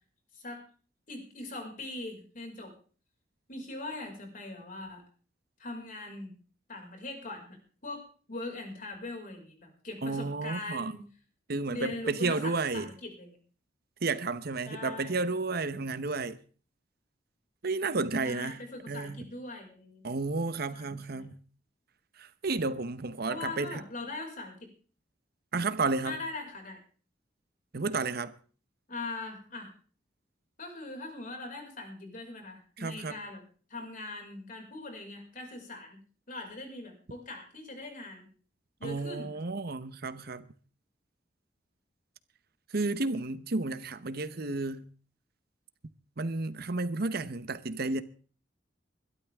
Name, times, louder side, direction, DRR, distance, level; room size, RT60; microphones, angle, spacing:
voice 1, 0.3-0.6 1.1-2.7 3.5-5.0 5.6-6.3 6.7-7.6 7.8-11.0 11.5-13.4 14.7-15.2 18.2-20.1 20.7-21.3 23.3-24.7 26.0-26.8 28.9-29.7 30.6-33.4 33.7-36.0 36.3-38.3 38.8-39.4, left 2 dB, 50° left, 5.4 m, -41 dB
voice 2, 10.0-10.9 11.5-12.9 14.0-16.4 17.6-18.6 18.9-19.2 20.0-21.4 22.2-23.8 25.5-26.2 27.7-28.3 32.8-33.2 38.8-40.5 42.7-44.8 46.2-48.0, right 3 dB, 60° right, 0.9 m, -32 dB
22.5 x 12.5 x 3.6 m
head